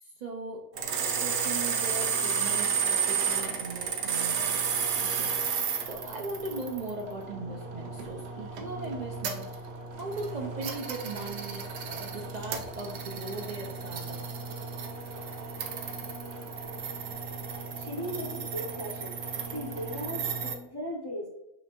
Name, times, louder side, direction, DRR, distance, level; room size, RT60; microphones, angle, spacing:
voice 1, 0.0-9.7 10.0-14.4, right 2 dB, 50° right, 0 dB, 0.5 m, -39 dB
sound 1, 0.8-20.5, right 6 dB, 75° right, 0.9 m, -33 dB
voice 2, 17.5-19.1 19.5-21.3, left 1 dB, 30° left, -2 dB, 0.5 m, -37 dB
5.7 x 3.2 x 2.9 m, 0.95 s
omnidirectional pair, 1.1 m